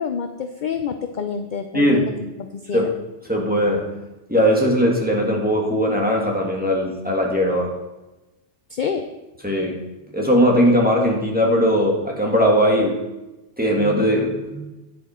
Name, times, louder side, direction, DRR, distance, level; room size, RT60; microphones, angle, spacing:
voice 1, 0.0-2.9 8.7-9.1, left 6 dB, 50° left, 7 dB, 0.6 m, -27 dB
voice 2, 1.7-2.1 2.7-2.9 3.3-3.9 4.3-7.7 9.4-9.8 10.1-13.0 13.6-14.6, equal, 5° right, -1 dB, 1.8 m, -19 dB
9.6 x 9.5 x 4.3 m, 1.0 s
omnidirectional pair, 1.2 m